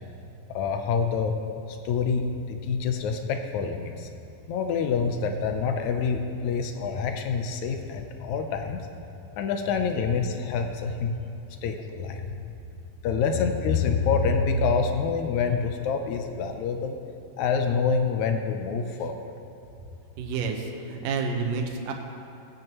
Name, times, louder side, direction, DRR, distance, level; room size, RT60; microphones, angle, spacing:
voice 1, 0.5-1.4 1.7-4.1 4.5-8.8 9.4-11.1 11.6-12.3 13.0-17.0 17.4-19.3, left 5 dB, 80° left, 5 dB, 1.7 m, -26 dB
voice 2, 20.2-21.9, right 5 dB, 70° right, 3 dB, 2.5 m, -29 dB
20.0 x 9.2 x 3.0 m, 2.7 s
omnidirectional pair, 4.1 m